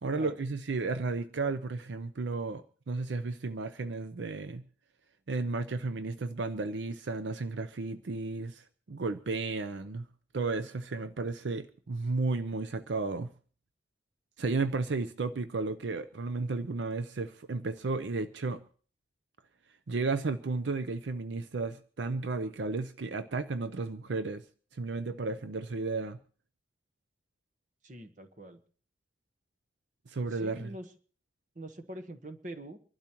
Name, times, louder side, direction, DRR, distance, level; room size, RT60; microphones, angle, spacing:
voice 1, 0.0-4.6 5.3-10.1 10.3-13.3 14.4-18.6 19.9-24.4 24.7-26.2 30.1-30.7, right 3 dB, 80° right, 0.6 m, -33 dB
voice 2, 27.8-28.6 30.3-30.9 31.5-32.8, right 1 dB, 45° right, 1.1 m, -44 dB
25.5 x 12.0 x 3.0 m
head